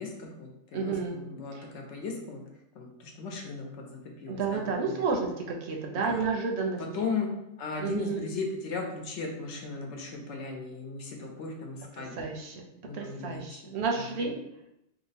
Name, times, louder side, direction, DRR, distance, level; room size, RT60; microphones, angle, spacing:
voice 1, 0.0-2.4 2.7-5.0 5.9-6.2 6.8-7.3 7.6-12.2 12.8-14.3, left 4 dB, 75° left, 1 dB, 1.0 m, -37 dB
voice 2, 0.7-1.2 1.5-1.6 4.3-7.1 7.8-8.2 12.2-12.6 12.9-14.3, right 4 dB, 70° right, 1 dB, 0.8 m, -31 dB
2.9 x 2.0 x 4.0 m, 0.85 s
omnidirectional pair, 1.2 m